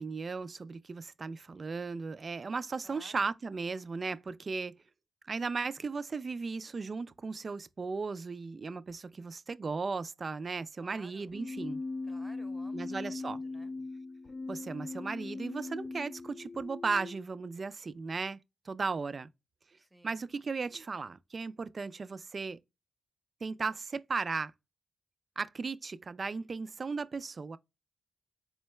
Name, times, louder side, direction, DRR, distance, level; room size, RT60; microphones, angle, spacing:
voice 1, 0.0-4.8 5.3-11.8 12.7-13.4 14.5-18.4 18.7-19.3 20.0-22.6 23.4-24.5 25.4-27.6, right 4 dB, 40° right, 0.3 m, -36 dB
voice 2, 2.8-3.2 10.8-11.3 12.0-13.7 19.8-20.2, right 1 dB, 5° right, 0.8 m, -56 dB
Keyboard (musical), 11.3-17.2, left 3 dB, 35° left, 0.4 m, -40 dB
4.4 x 2.2 x 3.0 m
cardioid pair, 100°, 0 cm